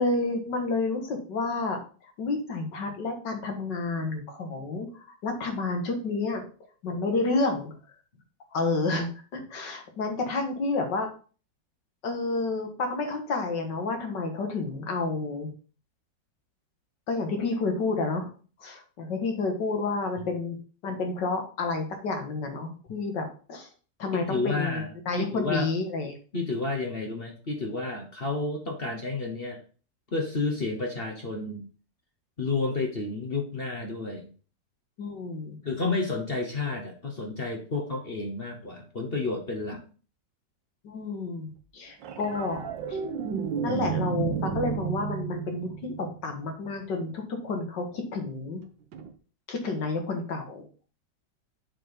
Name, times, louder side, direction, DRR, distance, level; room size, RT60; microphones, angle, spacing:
voice 1, 0.0-1.8 2.2-6.4 6.8-7.7 8.5-11.1 12.0-15.5 17.1-18.3 18.6-20.6 20.8-23.7 24.0-26.1 35.0-35.6 40.8-43.0 43.6-48.6 49.5-50.6, left 3 dB, 80° left, 4 dB, 2.3 m, -30 dB
voice 2, 24.1-25.7 26.3-29.6 30.1-31.7 32.4-34.3 35.6-39.8 49.0-49.1, left 3 dB, 35° left, 1 dB, 1.2 m, -31 dB
sound 1, 42.0-46.5 48.9-49.1, right 8 dB, 90° right, 1.6 m, -32 dB
7.4 x 4.6 x 5.1 m, 0.38 s
omnidirectional pair, 1.9 m